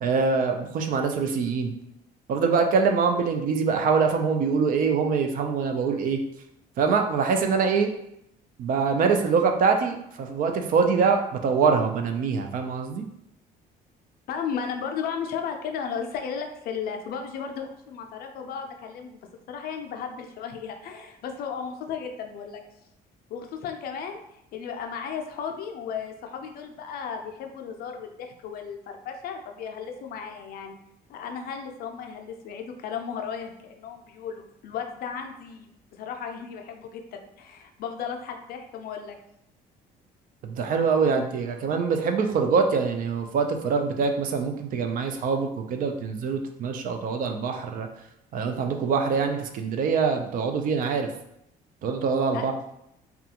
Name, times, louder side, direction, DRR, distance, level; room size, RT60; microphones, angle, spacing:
voice 1, 0.0-1.7 2.3-6.2 6.8-7.9 8.6-13.1 40.4-47.9 48.3-51.1 51.8-52.5, right 5 dB, 55° right, 4 dB, 0.4 m, -24 dB
voice 2, 14.3-19.2 19.5-22.6 23.3-30.8 31.1-39.2 52.3-52.5, left 7 dB, 65° left, 4 dB, 0.4 m, -35 dB
2.3 x 2.2 x 2.8 m, 0.79 s
cardioid pair, 110°, 17 cm